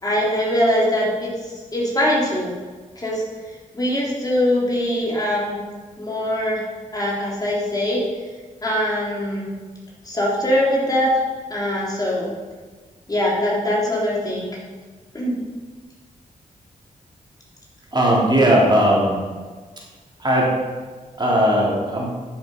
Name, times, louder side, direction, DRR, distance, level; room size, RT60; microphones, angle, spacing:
voice 1, 0.0-2.5 3.0-3.2 3.7-5.6 6.0-6.6 6.9-8.0 8.6-9.5 10.0-11.2 11.5-12.3 13.1-14.6 15.1-15.4, left 1 dB, 25° left, -4 dB, 3.8 m, -22 dB
voice 2, 17.9-19.2 20.2-20.6 21.2-22.1, equal, 30° right, -4 dB, 3.7 m, -17 dB
13.5 x 7.7 x 5.5 m, 1.4 s
cardioid pair, 90°, 14 cm